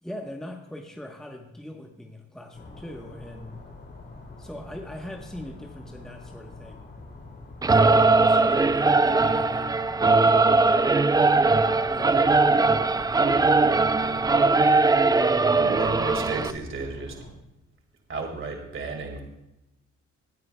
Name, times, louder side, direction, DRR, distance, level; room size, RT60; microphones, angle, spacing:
voice 1, 0.0-3.6 4.4-6.9 7.7-9.8 10.2-11.1 11.8-14.3, left 1 dB, ahead, 2 dB, 1.1 m, -42 dB
sound 1, 2.5-17.3, left 2 dB, 35° left, 2.5 m, -45 dB
Singing / Musical instrument, 7.6-16.5, right 3 dB, 15° right, 0.3 m, -20 dB
voice 2, 15.5-17.4 18.1-19.2, right 3 dB, 45° right, 3 dB, 2.0 m, -33 dB
18.5 x 9.5 x 2.2 m, 0.92 s
cardioid pair, 90°, 30 cm